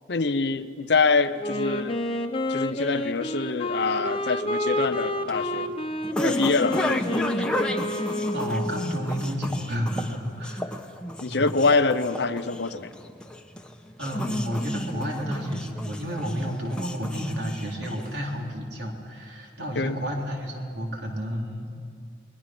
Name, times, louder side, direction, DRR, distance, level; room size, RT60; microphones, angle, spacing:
voice 1, 0.1-2.0 2.5-5.7 6.2-7.4 11.2-12.9 19.7-20.0, left 4 dB, 65° left, 12 dB, 0.8 m, -25 dB
Wind instrument woodwind instrument, 1.4-9.2, left 1 dB, 30° left, 1.0 m, -29 dB
sound 1, 4.8-18.4, left 1 dB, 5° left, 1.0 m, -32 dB
voice 2, 8.3-10.8 11.3-11.5 14.0-21.7, equal, 65° right, 0 dB, 3.8 m, -31 dB
30.0 x 21.0 x 6.1 m, 2.3 s
head